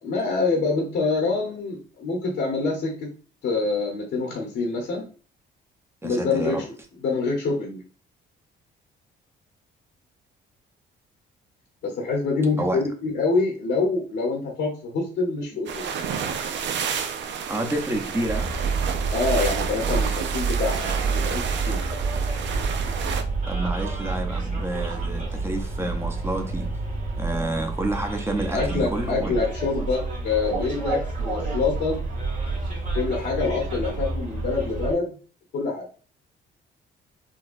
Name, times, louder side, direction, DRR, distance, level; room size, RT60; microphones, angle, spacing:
voice 1, 0.0-3.1 3.4-5.0 6.0-6.7 7.0-7.8 11.8-15.8 19.1-21.8 28.5-32.0 32.9-35.2 35.5-35.9, left 4 dB, 75° left, -1 dB, 1.0 m, -26 dB
voice 2, 6.0-6.6 12.6-12.8 17.5-18.5 23.5-26.7 27.2-29.4, right 1 dB, 10° right, 3 dB, 0.8 m, -29 dB
sound 1, 15.7-23.2, right 7 dB, 65° right, 0.5 m, -30 dB
Bus, 18.2-34.9, right 4 dB, 40° right, 1.3 m, -28 dB
3.9 x 2.3 x 2.5 m, 0.37 s
cardioid pair, 90°, 20 cm